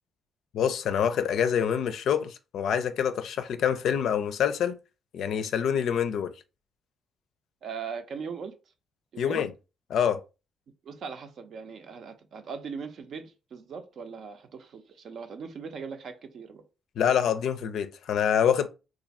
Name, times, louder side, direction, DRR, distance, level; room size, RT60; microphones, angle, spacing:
voice 1, 0.5-4.8 5.1-6.3 9.2-9.5 9.9-10.2 17.0-18.7, left 8 dB, 70° left, 0.4 m, -26 dB
voice 2, 7.6-8.6 9.1-9.5 10.8-16.7, right 5 dB, 60° right, 0.6 m, -39 dB
2.5 x 2.4 x 4.0 m
cardioid pair, 90°, 0 cm